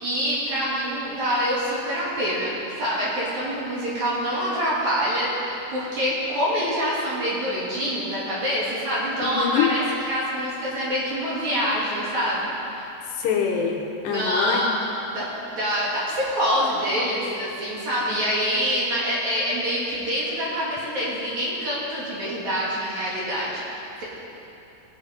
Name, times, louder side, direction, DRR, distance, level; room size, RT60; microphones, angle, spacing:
voice 1, 0.0-12.5 12.7-12.9 14.1-14.7 15.1-23.6 24.0-24.1, equal, 45° right, -7 dB, 3.2 m, -26 dB
voice 2, 9.2-9.7 13.2-14.7, left 7 dB, 80° left, 1 dB, 2.8 m, -24 dB
19.0 x 7.4 x 5.2 m, 3.0 s
omnidirectional pair, 5.2 m